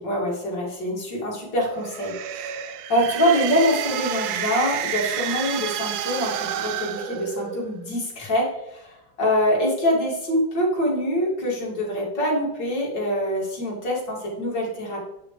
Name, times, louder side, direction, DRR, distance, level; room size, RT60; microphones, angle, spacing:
voice 1, 0.0-15.0, equal, 65° left, -4 dB, 3.2 m, -25 dB
sound 1, 1.7-7.8, right 10 dB, 75° right, 0.9 m, -30 dB
9.0 x 6.1 x 3.2 m, 0.86 s
omnidirectional pair, 2.1 m